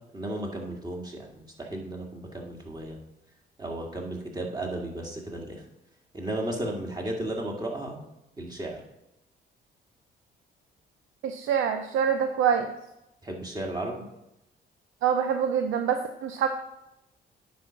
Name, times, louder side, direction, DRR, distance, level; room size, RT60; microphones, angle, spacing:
voice 1, 0.1-3.0 3.6-5.6 6.1-8.0 8.4-8.8 13.2-14.1, right 1 dB, 20° right, 0 dB, 2.0 m, -34 dB
voice 2, 11.2-12.7 15.0-16.5, right 8 dB, 85° right, 6 dB, 0.6 m, -25 dB
9.6 x 4.2 x 5.9 m, 0.90 s
cardioid pair, 90°, 20 cm